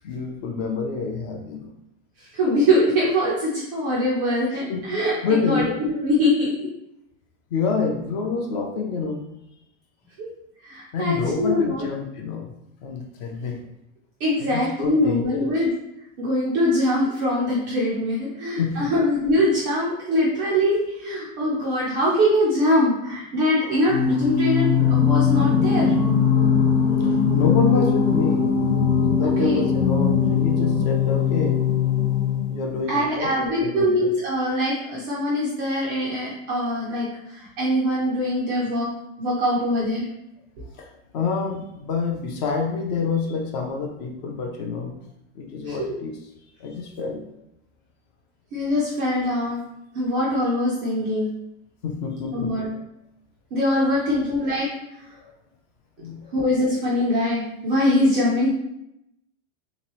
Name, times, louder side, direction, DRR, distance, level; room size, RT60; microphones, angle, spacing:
voice 1, 0.0-1.7 4.5-4.8 5.2-5.7 7.5-9.3 10.9-12.5 12.8-13.6 14.4-15.5 18.6-18.9 24.2-24.4 26.4-26.5 27.0-28.5 29.1-31.6 32.5-33.9 40.8-40.9 41.1-45.0 45.3-46.2 46.6-47.2 51.8-52.6 55.2-55.3 56.0-56.3, left 5 dB, 35° left, 2 dB, 0.5 m, -27 dB
voice 2, 2.3-6.7 10.2-10.3 10.6-11.9 14.2-15.7 16.2-25.9 29.2-29.7 32.9-38.9 39.2-40.1 45.6-45.9 48.5-49.6 49.9-51.3 52.3-52.7 53.5-54.7 56.3-58.5, left 1 dB, 20° right, -6 dB, 0.3 m, -23 dB
Singing, 23.9-32.8, left 6 dB, 75° left, 1.0 m, -20 dB
3.3 x 3.0 x 3.0 m, 0.82 s
supercardioid pair, 165°, 37 cm